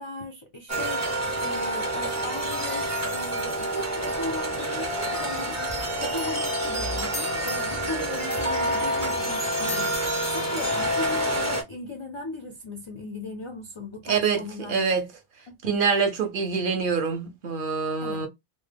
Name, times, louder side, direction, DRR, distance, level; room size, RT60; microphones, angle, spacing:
voice 1, 0.0-5.6 6.0-14.8 15.5-15.7 18.0-18.3, left 2 dB, 50° left, 0.3 m, -37 dB
sound 1, 0.7-11.6, right 1 dB, 20° right, 0.5 m, -28 dB
sound 2, 7.0-11.6, left 6 dB, 85° left, 0.9 m, -42 dB
voice 2, 14.1-15.1 15.6-18.3, right 5 dB, 55° right, 0.7 m, -25 dB
2.1 x 2.1 x 3.3 m
omnidirectional pair, 1.1 m